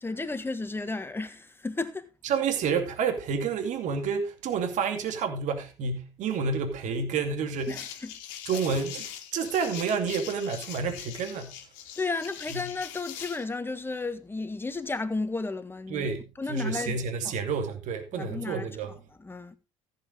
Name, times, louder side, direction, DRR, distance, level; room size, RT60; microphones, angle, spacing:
voice 1, 0.0-2.1 7.7-8.1 12.0-16.1 16.4-17.0 17.2-17.4 18.1-18.7 19.2-19.6, left 3 dB, 15° left, 1.6 m, -33 dB
voice 2, 2.2-7.8 8.5-11.5 12.5-12.7 15.9-18.9, right 5 dB, 55° right, 2.4 m, -29 dB
sound 1, 7.6-13.5, left 10 dB, 65° left, 2.0 m, -42 dB
14.5 x 8.1 x 3.8 m
hypercardioid pair, 65°, 16 cm